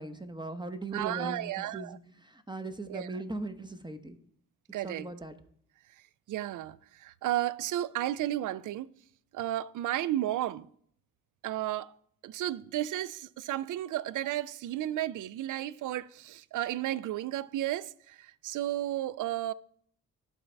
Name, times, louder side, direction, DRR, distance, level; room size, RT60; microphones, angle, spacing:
voice 1, 0.0-4.2 4.8-5.3, right 2 dB, 10° right, 0.9 m, -39 dB
voice 2, 0.9-2.0 2.9-3.2 4.7-5.1 6.3-8.9 9.3-10.7 11.4-11.9 12.2-19.5, right 13 dB, 50° right, 0.4 m, -33 dB
12.0 x 4.2 x 3.4 m
hypercardioid pair, 40°, 42 cm